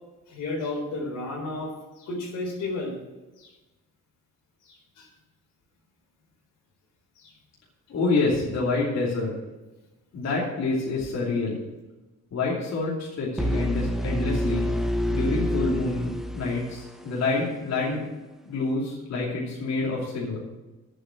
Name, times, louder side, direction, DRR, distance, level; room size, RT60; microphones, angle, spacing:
voice 1, 0.3-3.0 3.4-3.5 4.6-5.1 7.2-7.3, left 2 dB, 85° left, -1 dB, 4.0 m, -33 dB
voice 2, 7.9-9.3 10.1-11.6 12.3-14.7 15.1-18.1 18.4-20.4, left 3 dB, 60° left, -5 dB, 2.9 m, -27 dB
sound 1, 13.4-17.3, equal, ahead, 1.0 m, -27 dB
9.1 x 7.7 x 7.8 m, 1.1 s
cardioid pair, 90°, 30 cm